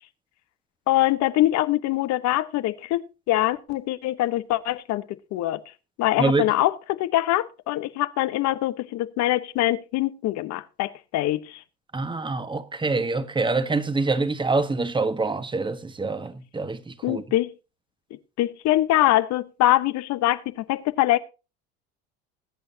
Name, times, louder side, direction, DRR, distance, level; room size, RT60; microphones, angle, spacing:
voice 1, 0.9-5.0 5.3-5.6 6.0-11.6 17.0-17.5 18.4-21.2, left 15 dB, 60° left, 1.1 m, -23 dB
voice 2, 11.9-17.2, right 3 dB, 15° right, 1.4 m, -25 dB
21.0 x 8.6 x 2.8 m
supercardioid pair, 85°, 31 cm